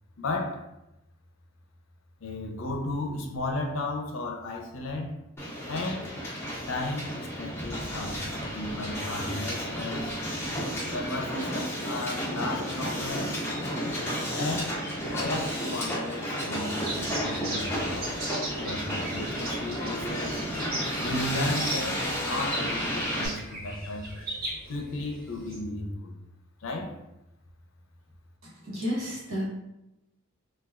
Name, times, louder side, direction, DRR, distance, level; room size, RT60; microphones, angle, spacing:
voice 1, 0.2-0.6 2.2-5.1 5.7-6.2 6.7-8.2 8.5-10.1 10.9-13.3 14.4-14.7 15.0-18.1 18.6-20.4 21.0-24.1 24.7-26.1 26.6-27.0, left 2 dB, 70° left, 2 dB, 0.5 m, -34 dB
Hiss, 5.4-23.3, equal, 10° left, 0.5 m, -32 dB
sound 1, 16.8-25.6, right 1 dB, 45° right, 0.7 m, -38 dB
voice 2, 28.4-29.4, equal, 80° right, -6 dB, 1.0 m, -32 dB
3.3 x 2.2 x 2.3 m, 0.91 s
head